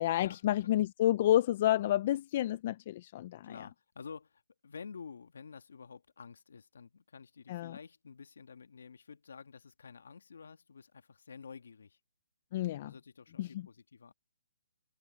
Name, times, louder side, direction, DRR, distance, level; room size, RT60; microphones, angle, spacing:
voice 1, 0.0-3.7 7.5-7.8 12.5-12.9 13.4-13.7, left 13 dB, 35° left, 0.4 m, -30 dB
voice 2, 3.4-12.0 12.8-14.1, left 5 dB, 75° left, 2.1 m, -50 dB
hypercardioid pair, 160°, 0 cm